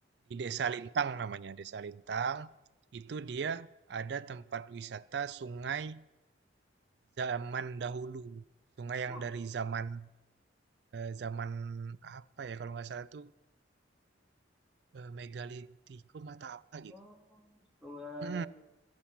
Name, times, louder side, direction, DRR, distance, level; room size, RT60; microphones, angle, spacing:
voice 1, 0.3-2.5 2.9-6.0 7.2-8.4 8.8-10.1 10.9-13.3 14.9-16.9 18.2-18.5, right 6 dB, 60° right, 0.4 m, -38 dB
voice 2, 16.9-18.5, left 1 dB, 5° right, 1.6 m, -46 dB
11.5 x 10.0 x 7.3 m
head